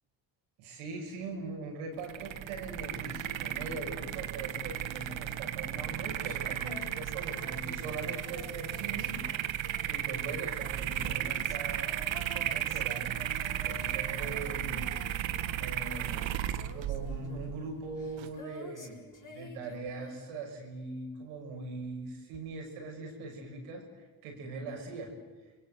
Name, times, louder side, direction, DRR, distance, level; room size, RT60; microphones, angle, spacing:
voice 1, 0.6-9.1 9.9-13.1 13.6-14.9 15.6-16.3 16.7-19.0 19.3-25.1, right 3 dB, 90° right, 3 dB, 6.4 m, -41 dB
sound 1, 2.0-18.3, right 11 dB, 65° right, 1.5 m, -35 dB
Female singing, 5.4-20.8 22.3-22.4, left 2 dB, 40° left, 6.4 m, -50 dB
29.5 x 22.0 x 8.1 m, 1.3 s
supercardioid pair, 65°, 49 cm